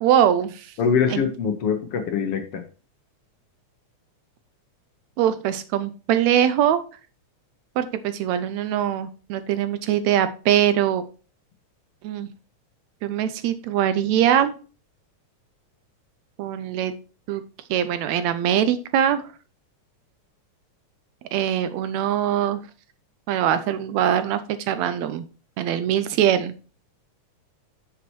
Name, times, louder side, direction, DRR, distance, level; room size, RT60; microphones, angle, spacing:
voice 1, 0.0-0.7 1.1-1.2 5.2-6.8 7.8-11.0 12.0-12.3 13.0-14.5 16.4-16.9 17.3-17.4 17.7-19.2 21.3-22.6 23.3-24.4 24.7-25.3 25.6-26.5, right 10 dB, 80° right, 12 dB, 1.8 m, -22 dB
voice 2, 0.8-2.6, left 6 dB, 65° left, 6 dB, 1.7 m, -23 dB
8.7 x 6.9 x 3.1 m, 0.35 s
omnidirectional pair, 3.4 m